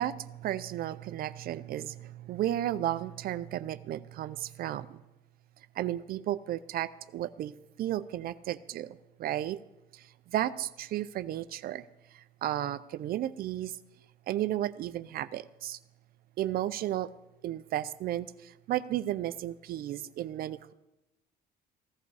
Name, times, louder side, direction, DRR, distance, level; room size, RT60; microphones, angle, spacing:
voice 1, 0.0-5.0 5.8-7.5 7.8-9.6 9.9-11.8 12.1-13.8 14.3-15.8 16.4-17.1 17.4-20.7, right 13 dB, 60° right, 14 dB, 0.5 m, -33 dB
15.5 x 12.0 x 4.7 m, 0.97 s
cardioid pair, 110°, 17 cm